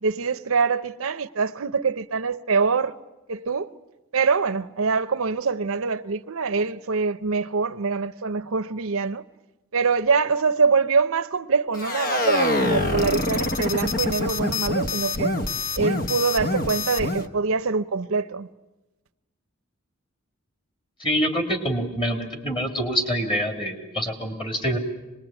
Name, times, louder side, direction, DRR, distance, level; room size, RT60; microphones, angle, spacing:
voice 1, 0.0-3.0 3.3-3.7 4.1-9.2 9.7-15.3 15.7-18.5, right 4 dB, 70° right, 0.8 m, -24 dB
descent with buzzes per bounce, 11.7-17.3, left 2 dB, 45° left, 1.1 m, -25 dB
voice 2, 21.0-24.8, equal, 25° left, 3.1 m, -26 dB
25.0 x 20.5 x 9.0 m
head